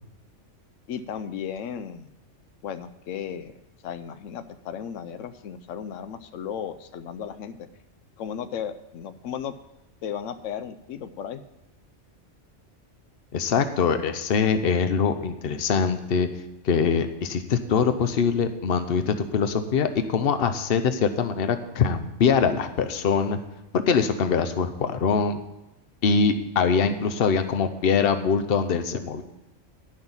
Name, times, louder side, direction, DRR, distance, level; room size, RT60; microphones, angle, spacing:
voice 1, 0.9-2.1 2.6-3.6 3.8-7.7 8.2-9.5 10.0-11.4, left 8 dB, 85° left, 11 dB, 1.0 m, -35 dB
voice 2, 13.3-16.3 16.6-23.4 23.7-25.4 26.0-29.2, left 6 dB, 55° left, 9 dB, 1.0 m, -23 dB
11.0 x 6.0 x 7.1 m, 0.96 s
omnidirectional pair, 1.3 m